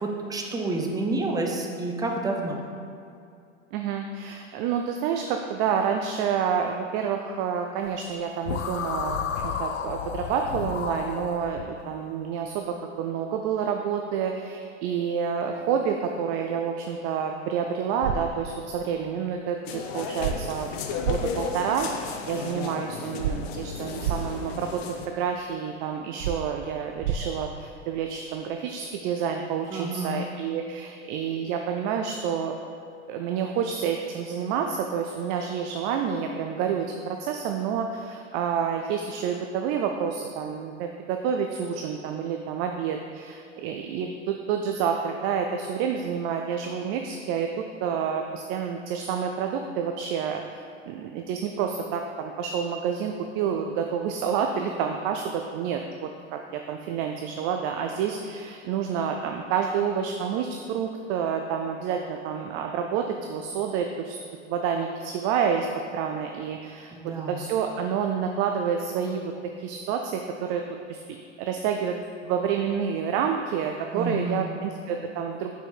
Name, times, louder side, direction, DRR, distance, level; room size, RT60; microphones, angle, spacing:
voice 1, 0.0-2.6 29.7-30.3 66.9-67.4 73.9-74.7, right 2 dB, 10° right, 1 dB, 0.8 m, -29 dB
voice 2, 3.7-20.7 21.1-32.6 33.1-64.2 64.5-65.7 65.9-69.3 69.6-70.6 70.9-72.0 72.2-75.5, right 7 dB, 35° right, 4 dB, 0.4 m, -29 dB
sound 1, 8.4-11.7, left 7 dB, 85° left, 0.5 m, -32 dB
sound 2, 18.0-18.2 20.2-20.3 21.0-21.2 23.2-23.3 24.0-24.2 26.2-26.3 27.0-27.2, right 9 dB, 75° right, 0.6 m, -26 dB
sound 3, 19.6-25.1, left 5 dB, 50° left, 0.8 m, -34 dB
6.0 x 4.7 x 5.2 m, 2.4 s
hypercardioid pair, 95°, 38 cm